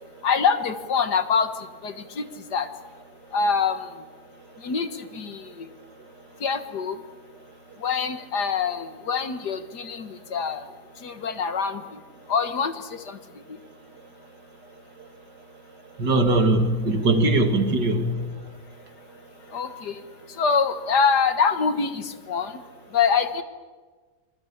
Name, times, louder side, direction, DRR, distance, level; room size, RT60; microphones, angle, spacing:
voice 1, 0.2-1.5 1.8-2.2 2.5-2.7 3.3-3.9 4.6-5.7 6.4-7.0 7.8-10.7 11.0-11.8 12.3-13.2 19.5-20.0 20.4-22.5 22.9-23.4, left 5 dB, 60° left, 10 dB, 2.0 m, -25 dB
voice 2, 16.0-18.3, right 2 dB, 65° right, 7 dB, 2.8 m, -21 dB
26.5 x 22.0 x 8.7 m, 1.4 s
omnidirectional pair, 2.0 m